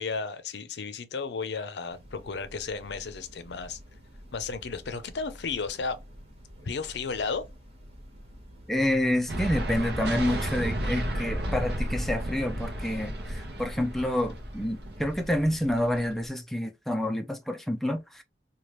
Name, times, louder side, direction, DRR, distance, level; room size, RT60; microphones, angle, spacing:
voice 1, 0.0-3.8 4.3-6.0 6.6-7.4, left 4 dB, 75° left, 0.5 m, -33 dB
Train, 1.9-15.8, equal, 35° right, 1.1 m, -49 dB
voice 2, 8.7-18.2, left 1 dB, ahead, 0.3 m, -28 dB
sound 1, 9.3-16.3, right 1 dB, 65° right, 0.8 m, -33 dB
3.2 x 2.3 x 3.0 m
head